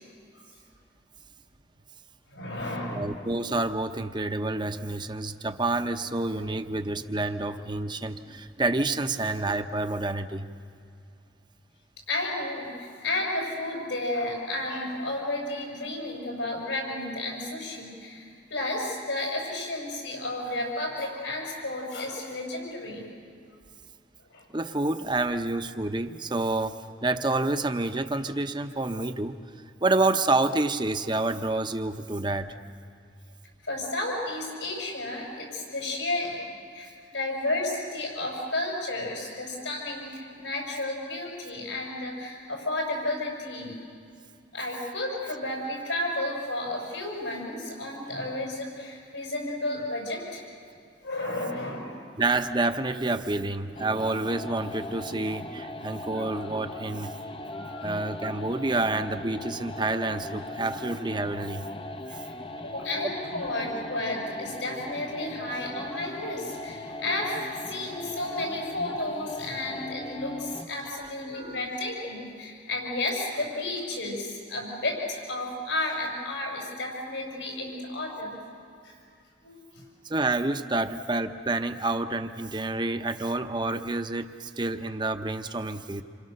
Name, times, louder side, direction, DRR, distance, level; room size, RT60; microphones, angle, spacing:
voice 1, 2.3-3.1 12.1-23.1 24.3-24.5 33.6-43.8 44.5-50.4 51.0-51.9 57.5-57.9 62.1-62.3 62.6-78.4 78.8-78.9 79.4-79.8, left 2 dB, 80° left, 0 dB, 6.3 m, -32 dB
voice 2, 2.9-10.5 24.5-29.4 29.8-32.5 52.2-57.1 57.8-61.7 71.0-71.1 71.3-71.6 80.0-86.0, right 2 dB, 25° right, 8 dB, 0.9 m, -28 dB
sound 1, 53.8-70.8, left 1 dB, 30° left, 0.7 m, -39 dB
28.0 x 26.5 x 6.6 m, 2.3 s
head